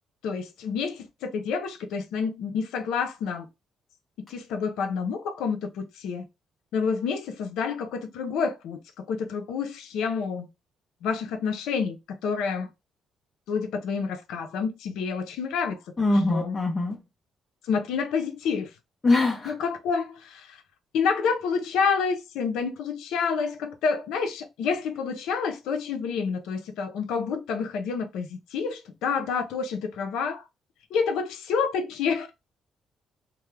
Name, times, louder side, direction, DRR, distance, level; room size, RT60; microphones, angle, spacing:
voice 1, 0.2-3.5 4.3-6.2 6.7-10.5 11.0-12.0 12.2-12.7 13.5-15.8 16.1-16.6 17.6-18.7 19.4-20.6 20.9-30.4 30.9-32.3, left 5 dB, 90° left, 0.5 m, -28 dB
voice 2, 16.0-17.0 19.0-19.5, left 2 dB, 30° left, 0.6 m, -22 dB
2.2 x 2.0 x 3.1 m
cardioid pair, 90°, 0 cm